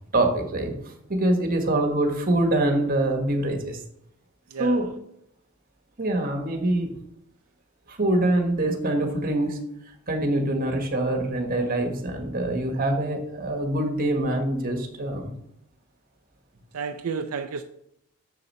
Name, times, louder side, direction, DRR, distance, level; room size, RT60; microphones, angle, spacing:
voice 1, 0.1-0.7 1.1-3.8 4.6-4.9 6.0-6.9 7.9-9.6 10.1-15.3, right 1 dB, 40° right, 1.4 m, -24 dB
voice 2, 16.7-17.6, right 5 dB, 80° right, 0.5 m, -31 dB
6.8 x 6.7 x 4.2 m
head